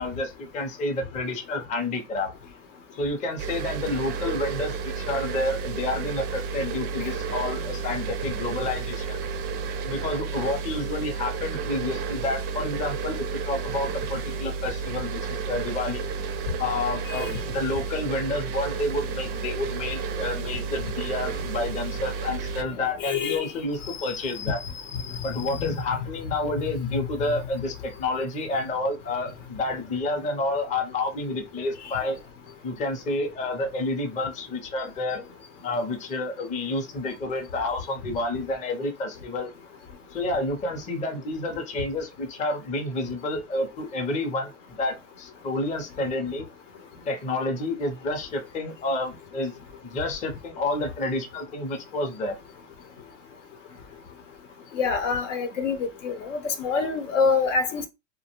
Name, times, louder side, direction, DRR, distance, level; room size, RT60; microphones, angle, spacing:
voice 1, 0.0-2.3 2.9-9.2 9.8-16.1 16.6-24.6 25.2-32.2 32.6-35.2 35.6-39.5 40.1-44.5 44.8-46.5 47.1-49.6 49.8-52.4, left 2 dB, 20° left, 0.5 m, -29 dB
sound 1, 3.4-22.6, right 5 dB, 30° right, 0.4 m, -32 dB
voice 2, 23.0-23.5 23.8-24.0 24.3-24.5 25.2-25.8 54.7-57.9, left 5 dB, 75° left, 0.8 m, -26 dB
2.5 x 2.2 x 2.9 m
supercardioid pair, 125°, 37 cm